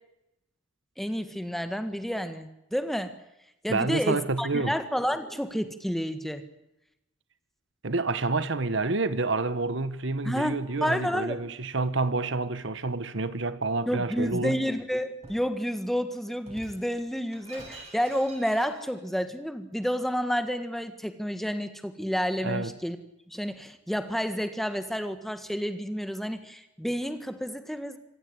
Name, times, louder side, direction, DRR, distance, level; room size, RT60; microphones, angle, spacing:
voice 1, 1.0-3.1 3.6-6.4 10.2-11.4 13.9-23.0 23.3-28.0, equal, ahead, 1.6 m, -30 dB
voice 2, 3.7-4.7 7.8-14.6 22.4-22.7, right 3 dB, 60° right, 1.2 m, -28 dB
Shatter, 14.2-14.5 15.2-15.5 16.4-19.0, right 1 dB, 30° right, 7.1 m, -48 dB
26.0 x 16.5 x 9.6 m
head